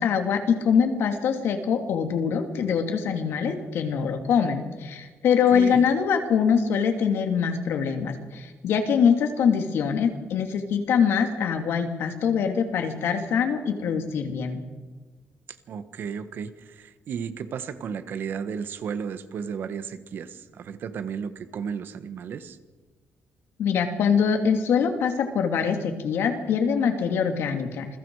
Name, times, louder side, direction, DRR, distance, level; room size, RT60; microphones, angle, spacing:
voice 1, 0.0-14.6 23.6-27.9, left 6 dB, 75° left, 5 dB, 2.8 m, -23 dB
voice 2, 5.5-5.8 15.7-22.6, right 7 dB, 55° right, 11 dB, 1.4 m, -34 dB
27.5 x 22.0 x 4.9 m, 1.3 s
cardioid pair, 170°, 4 cm